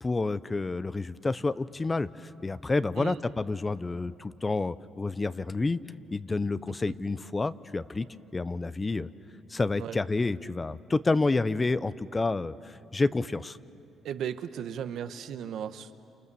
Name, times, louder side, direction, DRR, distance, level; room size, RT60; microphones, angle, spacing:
voice 1, 0.0-5.8 6.1-8.1 8.3-9.1 9.5-13.6, left 3 dB, 25° left, 16 dB, 0.7 m, -29 dB
voice 2, 14.0-16.0, right 9 dB, 75° right, 10 dB, 1.0 m, -36 dB
29.0 x 28.0 x 7.0 m, 2.9 s
cardioid pair, 90°, 0 cm